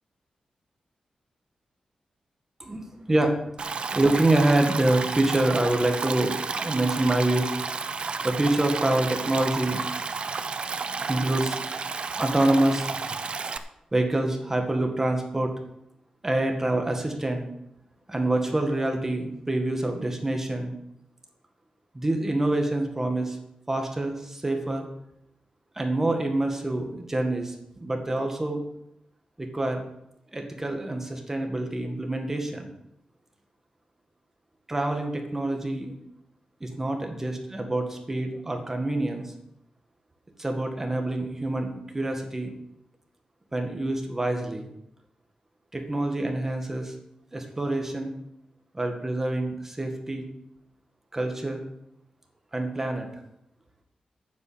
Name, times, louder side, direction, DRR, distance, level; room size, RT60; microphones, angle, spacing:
voice 1, 2.6-3.4 3.9-6.4 6.6-7.5 8.2-9.8 11.1-11.6 12.2-12.9 13.9-15.5 16.2-17.4 18.1-20.7 21.9-23.4 23.7-24.9 25.8-28.6 29.4-29.8 30.3-32.7 34.7-35.9 36.6-39.3 40.4-42.5 43.5-44.7 45.7-46.9 47.3-48.1 48.7-50.3 51.1-51.6 52.5-53.1, right 1 dB, 20° right, 3 dB, 1.9 m, -26 dB
Stream, 3.6-13.6, right 4 dB, 50° right, 0.7 m, -32 dB
9.6 x 7.5 x 7.5 m, 0.81 s
wide cardioid pair, 125°, 2 cm